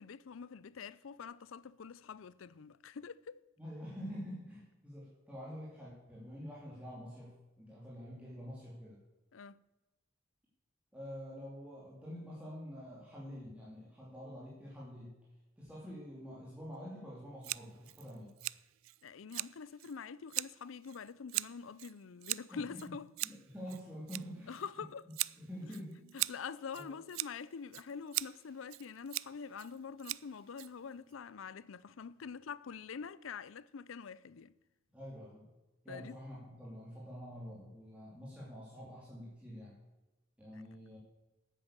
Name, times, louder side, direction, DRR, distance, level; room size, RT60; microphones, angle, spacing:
voice 1, 0.0-3.4 9.3-9.6 19.0-23.1 24.5-25.0 26.1-34.5 35.9-36.2, left 6 dB, 80° left, 0.5 m, -45 dB
voice 2, 3.6-9.0 10.9-15.2 15.6-18.3 22.5-22.9 23.2-24.5 25.4-26.0 26.7-26.9 34.9-35.5 35.8-39.7 40.4-41.0, equal, 5° right, 2.7 m, -47 dB
Scissors, 17.4-31.1, right 19 dB, 80° right, 0.3 m, -42 dB
9.9 x 9.2 x 7.4 m
head